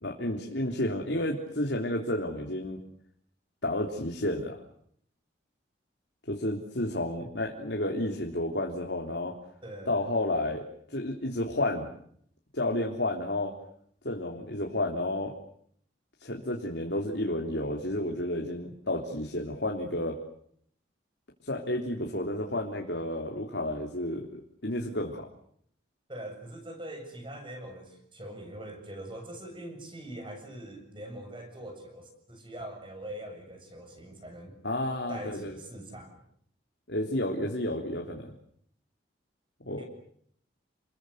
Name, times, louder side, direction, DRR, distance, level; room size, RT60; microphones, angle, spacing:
voice 1, 0.0-2.8 3.6-4.5 6.3-9.3 9.9-10.6 10.9-11.9 12.5-13.5 14.0-15.3 16.2-20.2 21.4-24.3 24.6-25.3 34.6-35.6 36.9-38.3 39.7-39.8, left 1 dB, 70° left, 1 dB, 3.5 m, -31 dB
voice 2, 9.6-10.1 26.1-34.6 35.1-36.2 39.8-39.9, right 1 dB, 25° right, 5 dB, 7.6 m, -43 dB
30.0 x 22.0 x 8.2 m, 0.66 s
head